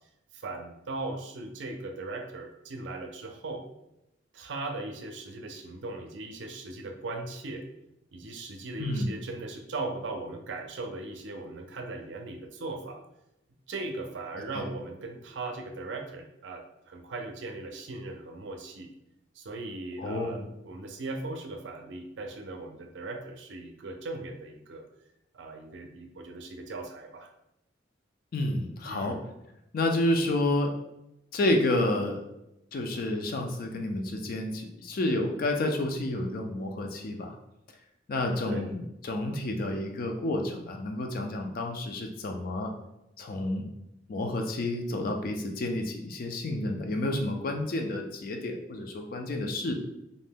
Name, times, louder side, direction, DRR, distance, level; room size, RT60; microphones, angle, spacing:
voice 1, 0.3-3.7 4.3-7.6 8.1-13.0 13.7-18.9 19.3-24.8 25.3-27.3 28.9-29.2 38.4-38.7, right 2 dB, 75° right, 4 dB, 0.5 m, -38 dB
voice 2, 8.8-9.1 14.3-14.6 20.0-20.4 28.3-29.2 29.7-30.7 31.3-32.2 32.7-37.3 38.1-42.7 43.2-43.7 44.1-49.7, left 1 dB, 50° left, 3 dB, 0.4 m, -30 dB
2.6 x 2.1 x 3.4 m, 0.85 s
head